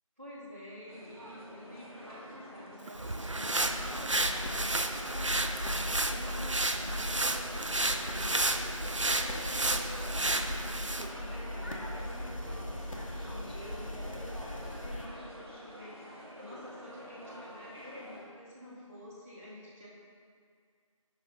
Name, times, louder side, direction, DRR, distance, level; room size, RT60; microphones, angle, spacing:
voice 1, 0.2-19.9, equal, 25° right, -11 dB, 1.4 m, -49 dB
sound 1, 0.9-18.3, equal, 45° right, 1.1 m, -47 dB
sound 2, 2.9-11.1, right 2 dB, 60° right, 0.4 m, -32 dB
sound 3, 3.6-15.1, left 1 dB, 65° left, 0.9 m, -39 dB
6.0 x 5.5 x 3.9 m, 2.2 s
figure-of-eight pair, 180°, 18 cm